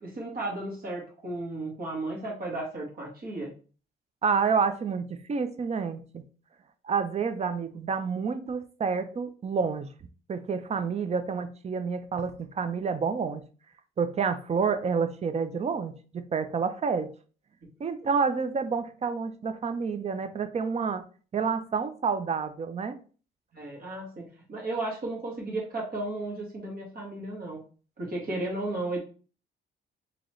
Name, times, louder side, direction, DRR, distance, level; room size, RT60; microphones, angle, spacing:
voice 1, 0.0-3.5 23.5-27.6 28.0-29.0, right 2 dB, 50° right, -2 dB, 1.7 m, -34 dB
voice 2, 4.2-6.2 6.8-9.9 10.3-13.4 14.0-17.1 17.8-21.0 21.3-23.0, right 5 dB, 35° right, 11 dB, 0.5 m, -29 dB
3.8 x 2.9 x 3.1 m, 0.39 s
cardioid pair, 90°, 20 cm